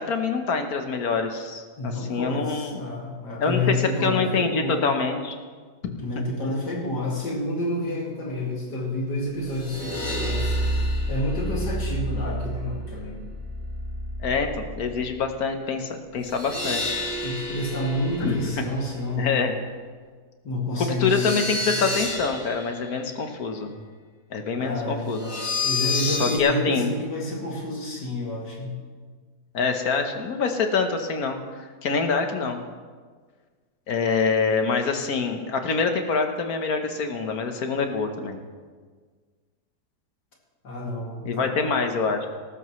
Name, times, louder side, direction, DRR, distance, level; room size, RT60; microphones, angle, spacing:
voice 1, 0.0-2.8 3.4-3.7 4.0-5.4 14.2-17.0 18.2-18.6 19.2-19.5 20.8-23.8 24.3-25.2 25.9-26.9 29.5-32.6 33.9-38.4 41.2-42.3, left 5 dB, 65° left, 5 dB, 1.6 m, -25 dB
voice 2, 1.8-4.9 6.0-10.6 11.1-13.2 17.2-19.4 20.4-21.9 24.6-28.8 40.6-41.6, left 1 dB, 85° left, -3 dB, 3.0 m, -29 dB
sound 1, 9.4-15.2 16.2-19.0 20.9-22.9 25.1-26.4, left 1 dB, 40° left, 2.2 m, -30 dB
18.0 x 14.0 x 3.2 m, 1.6 s
omnidirectional pair, 1.8 m